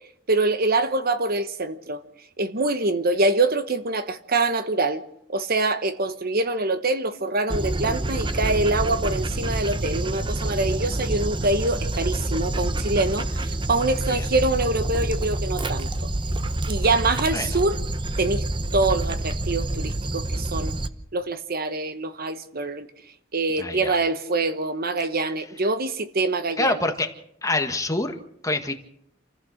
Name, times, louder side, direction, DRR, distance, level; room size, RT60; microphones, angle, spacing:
voice 1, 0.3-2.0 2.4-5.0 5.3-16.1 16.7-17.8 18.2-18.4 18.7-20.7 21.1-22.9 23.3-26.7, right 2 dB, 50° right, 1.1 m, -25 dB
Dog, 7.5-20.9, right 1 dB, 25° right, 1.0 m, -27 dB
voice 2, 23.6-23.9 26.6-27.1 27.4-28.2 28.4-28.7, left 2 dB, 15° left, 1.7 m, -25 dB
27.5 x 15.5 x 6.5 m
head